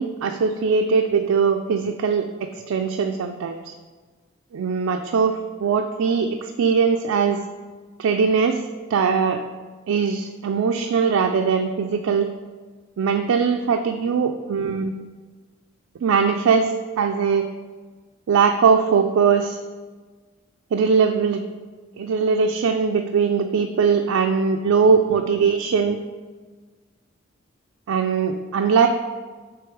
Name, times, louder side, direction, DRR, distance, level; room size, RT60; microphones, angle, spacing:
voice 1, 0.0-2.3 2.7-3.7 4.5-7.4 8.0-8.6 8.9-9.4 9.9-12.3 13.0-14.9 16.0-16.7 17.0-17.5 18.3-19.6 20.7-21.4 22.0-26.0 27.9-28.9, right 5 dB, 90° right, 4 dB, 0.4 m, -20 dB
7.0 x 3.2 x 4.6 m, 1.4 s
head